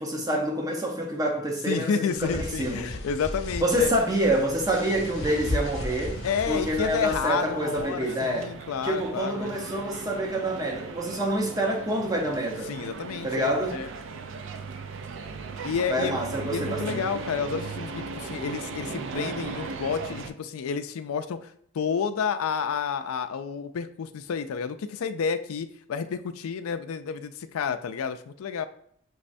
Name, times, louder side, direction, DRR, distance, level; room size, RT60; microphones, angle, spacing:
voice 1, 0.0-1.9 2.2-2.9 3.6-6.2 6.5-8.5 8.8-12.7 13.2-13.8 15.9-17.0, right 1 dB, 15° right, 0.7 m, -27 dB
voice 2, 1.7-3.9 6.2-9.5 12.7-13.9 15.6-16.2 16.5-28.7, left 6 dB, 85° left, 0.4 m, -30 dB
sound 1, 2.1-7.3, left 1 dB, 65° left, 0.8 m, -35 dB
sound 2, 3.5-20.3, right 4 dB, 60° right, 0.4 m, -38 dB
6.0 x 3.2 x 2.6 m
head